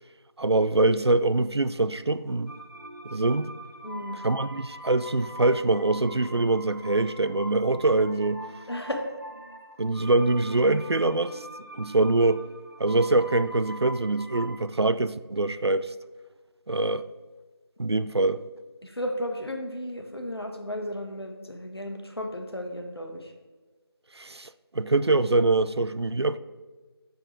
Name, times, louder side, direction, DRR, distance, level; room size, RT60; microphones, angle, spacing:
voice 1, 0.4-2.5 3.0-3.5 4.1-8.4 9.8-11.4 11.7-12.4 12.8-15.9 16.7-17.1 17.8-18.4 24.1-26.4, right 2 dB, 80° right, 0.5 m, -24 dB
sound 1, 2.5-14.7, right 1 dB, 50° right, 1.0 m, -42 dB
voice 2, 3.8-4.2 8.7-9.0 18.8-23.3, equal, 70° left, 1.4 m, -34 dB
6.9 x 6.2 x 4.7 m
figure-of-eight pair, 180°, 14 cm